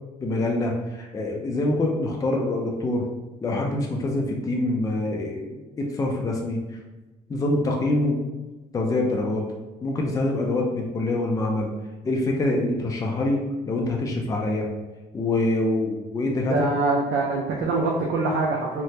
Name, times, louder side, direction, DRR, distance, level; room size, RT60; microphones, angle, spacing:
voice 1, 0.2-3.1 3.4-6.6 7.3-8.2 8.7-9.5 9.8-11.7 12.0-14.7 15.1-16.7, left 2 dB, 20° left, 0 dB, 0.4 m, -25 dB
voice 2, 16.5-18.8, right 3 dB, 75° right, -2 dB, 0.5 m, -24 dB
3.2 x 2.1 x 2.8 m, 1.2 s
cardioid pair, 110°, 17 cm